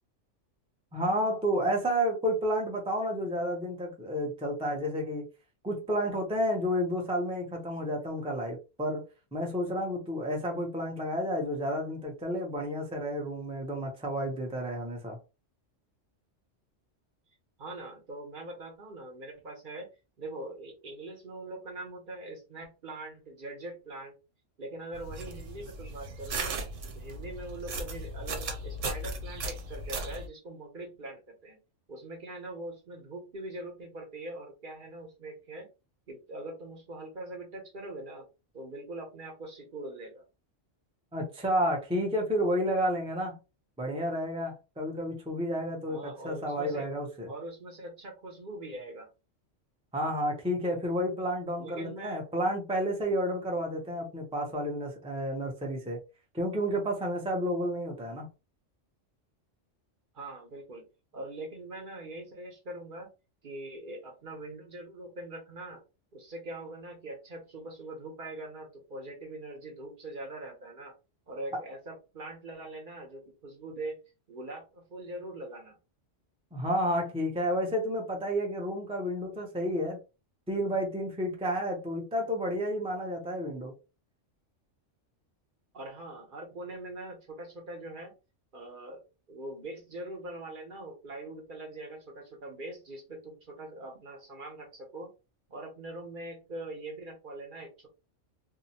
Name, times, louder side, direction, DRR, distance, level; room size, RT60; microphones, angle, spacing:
voice 1, 0.9-5.3 5.6-9.0 9.3-15.2 41.1-43.4 43.8-47.3 49.9-56.0 56.3-58.3 76.5-80.0 80.5-83.7, equal, 10° right, 0.3 m, -31 dB
voice 2, 17.6-19.9 20.2-24.2 24.6-26.6 26.9-31.6 31.9-35.7 36.1-38.3 38.5-40.2 45.9-46.9 47.3-49.1 51.5-52.2 60.1-60.9 61.1-63.1 63.4-65.8 66.1-70.9 71.3-74.0 74.3-75.8 85.7-88.1 88.5-89.0 89.3-95.1 95.5-97.9, right 2 dB, 45° right, 0.9 m, -42 dB
sound 1, 24.9-30.3, right 2 dB, 85° right, 1.1 m, -37 dB
2.7 x 2.0 x 2.8 m
omnidirectional pair, 1.3 m